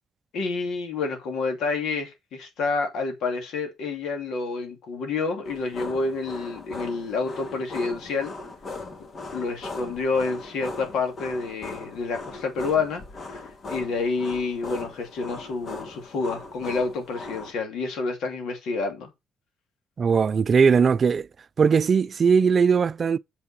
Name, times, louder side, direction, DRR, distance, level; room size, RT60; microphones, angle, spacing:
voice 1, 0.3-8.3 9.3-13.0 13.3-19.1, left 4 dB, 80° left, 2.6 m, -28 dB
sound 1, 5.4-17.5, left 3 dB, 45° left, 2.1 m, -39 dB
voice 2, 20.0-21.3 21.6-23.2, right 6 dB, 45° right, 0.5 m, -19 dB
6.8 x 5.9 x 5.4 m
cardioid pair, 90°, 0 cm